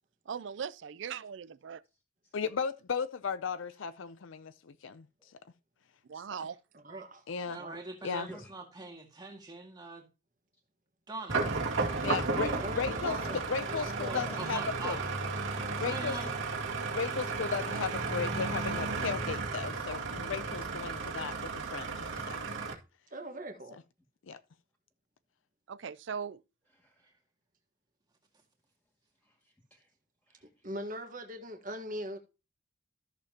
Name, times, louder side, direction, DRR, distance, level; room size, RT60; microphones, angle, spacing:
voice 1, 0.3-1.8 6.1-6.5 25.7-26.4, right 7 dB, 65° right, 0.4 m, -39 dB
voice 2, 2.3-5.1 7.3-7.6 8.0-8.3 12.0-15.0 15.8-16.2 16.9-22.4 24.3-24.4, left 6 dB, 75° left, 0.5 m, -35 dB
voice 3, 6.8-7.2 7.6-7.8 12.6-13.4 13.7-14.2 23.1-23.8 30.6-32.2, right 1 dB, 40° right, 1.5 m, -41 dB
voice 4, 7.5-10.1 11.1-11.4 14.4-15.1 15.7-16.3, right 3 dB, 20° right, 1.9 m, -42 dB
voice 5, 8.0-8.5 12.3-12.7 13.1-13.4 14.1-14.4 26.7-27.1 29.2-29.9 30.3-30.5, left 1 dB, 5° left, 2.0 m, -47 dB
sound 1, 11.3-22.7, right 4 dB, 85° right, 2.3 m, -34 dB
13.5 x 6.7 x 2.9 m
head